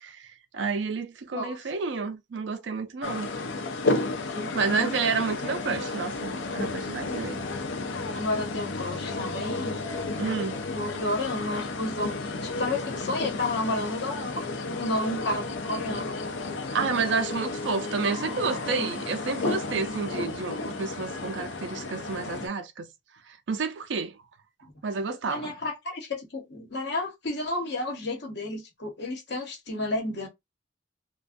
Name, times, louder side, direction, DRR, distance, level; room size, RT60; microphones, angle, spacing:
voice 1, 0.0-3.3 4.5-7.5 10.2-10.6 16.7-22.9 23.3-24.2 24.8-25.5, right 4 dB, 70° right, 0.4 m, -30 dB
sound 1, 3.0-22.5, left 3 dB, 80° left, 0.5 m, -32 dB
voice 2, 4.3-4.9 8.1-9.7 10.7-16.1 18.6-18.9 25.2-30.3, left 2 dB, 65° left, 1.0 m, -31 dB
2.4 x 2.2 x 2.5 m
head